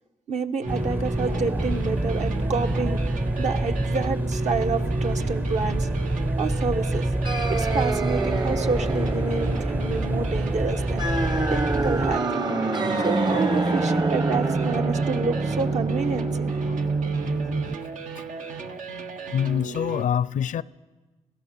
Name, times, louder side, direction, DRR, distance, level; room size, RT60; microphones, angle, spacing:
voice 1, 0.3-3.0 3.4-5.9 6.4-7.1 7.5-11.1 11.5-12.4 13.0-16.5, right 4 dB, 60° right, 1.3 m, -29 dB
sound 1, 0.6-20.1, right 4 dB, 85° right, 1.5 m, -36 dB
sound 2, 0.7-12.2, right 1 dB, 15° right, 0.6 m, -26 dB
sound 3, 7.2-17.7, right 3 dB, 35° right, 1.0 m, -26 dB
voice 2, 19.3-20.6, left 9 dB, 75° left, 0.6 m, -25 dB
26.0 x 17.0 x 6.8 m
cardioid pair, 105°, 13 cm